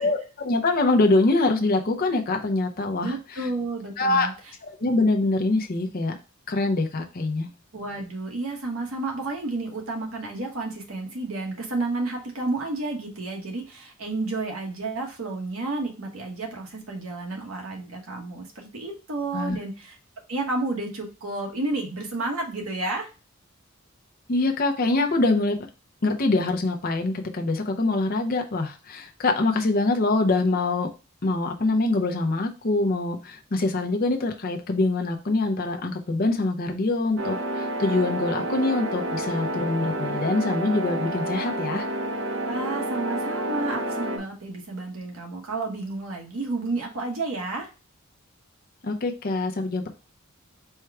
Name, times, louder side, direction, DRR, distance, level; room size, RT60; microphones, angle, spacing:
voice 1, 0.0-3.5 4.0-4.3 4.6-6.2 6.5-7.5 19.3-19.6 24.3-25.6 26.0-30.9 31.2-41.9 48.8-49.9, left 2 dB, 45° left, 3 dB, 0.6 m, -24 dB
voice 2, 3.0-4.3 7.7-20.0 20.3-23.1 42.4-47.7, right 2 dB, 80° right, 1 dB, 1.2 m, -31 dB
sound 1, 37.2-44.2, right 1 dB, 65° right, 0.7 m, -29 dB
4.4 x 2.2 x 4.7 m, 0.32 s
head